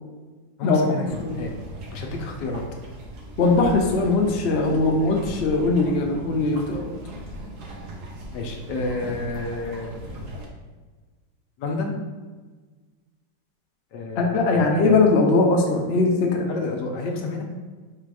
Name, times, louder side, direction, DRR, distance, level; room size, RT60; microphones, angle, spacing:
voice 1, 0.6-1.1 1.3-1.5 1.9-2.6 8.3-10.0 11.6-11.9 13.9-15.0 16.5-17.4, left 3 dB, 70° left, 2 dB, 1.3 m, -30 dB
sound 1, 1.0-10.5, equal, 65° right, 1.3 m, -39 dB
voice 2, 3.4-6.9 14.2-16.5, left 3 dB, 90° left, 1 dB, 0.5 m, -20 dB
4.4 x 2.5 x 4.7 m, 1.4 s
omnidirectional pair, 2.0 m